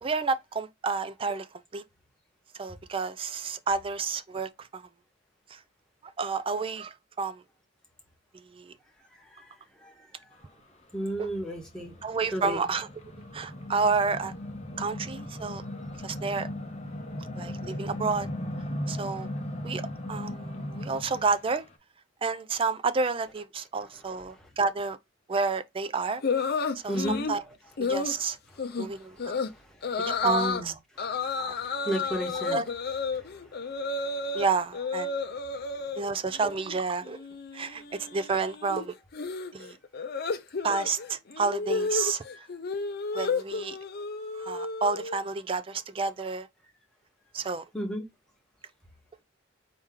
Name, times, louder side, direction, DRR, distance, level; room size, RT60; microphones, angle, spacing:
voice 1, 0.0-1.5 1.7-1.8 2.5-4.9 5.5-5.6 6.2-7.4 8.5-8.7 11.2-11.3 12.0-12.9 13.3-14.3 14.8-15.6 16.0-16.5 17.4-18.3 18.9-19.3 19.6-19.8 20.1-21.7 22.2-25.0 25.3-26.2 26.8-27.4 27.8-28.4 28.8-29.4 30.0-30.7 31.4-31.5 32.5-32.6 34.3-35.1 36.0-37.2 37.5-38.9 39.5-39.8 40.6-42.2 43.1-43.8 44.4-46.5 47.3-47.6, right 4 dB, 25° right, 0.4 m, -30 dB
voice 2, 10.9-11.9 12.3-12.6 26.8-27.2 30.0-30.7 31.0-31.2 31.8-32.6 33.1-33.3 42.3-42.4 42.7-42.9 47.7-48.0, right 1 dB, 5° left, 1.2 m, -33 dB
sound 1, 11.0-21.4, left 1 dB, 35° left, 0.9 m, -37 dB
sound 2, 26.2-27.4 27.8-28.2 28.6-28.9 29.2-29.5 29.8-30.6 31.0-34.5 34.7-36.0 36.3-36.8 37.0-45.2, left 4 dB, 50° left, 0.6 m, -32 dB
4.4 x 2.9 x 3.6 m
head